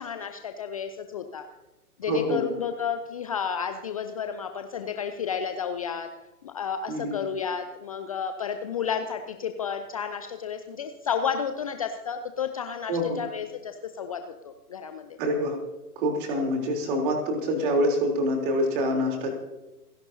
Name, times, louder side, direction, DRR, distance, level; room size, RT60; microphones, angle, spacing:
voice 1, 0.0-1.5 2.0-6.1 6.4-15.2, left 7 dB, 25° left, 7 dB, 0.6 m, -32 dB
voice 2, 2.1-2.4 6.9-7.2 12.9-13.2 15.2-15.6 16.0-19.3, equal, 35° right, 2 dB, 3.6 m, -26 dB
29.0 x 11.5 x 2.8 m, 1.0 s
figure-of-eight pair, 120°, 46 cm